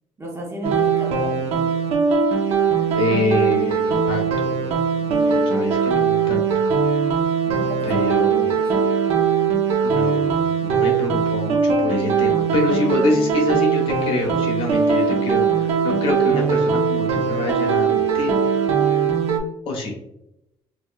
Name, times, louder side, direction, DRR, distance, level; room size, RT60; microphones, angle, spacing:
voice 1, 0.2-1.6 7.5-8.1 8.5-8.8, right 1 dB, 25° right, 0 dB, 0.8 m, -34 dB
sound 1, 0.6-19.4, right 6 dB, 70° right, 0.6 m, -20 dB
voice 2, 2.7-6.5 7.8-8.5 9.8-18.3 19.6-20.0, left 2 dB, 55° left, 0 dB, 1.0 m, -26 dB
4.5 x 2.3 x 2.2 m, 0.84 s
cardioid pair, 150°, 11 cm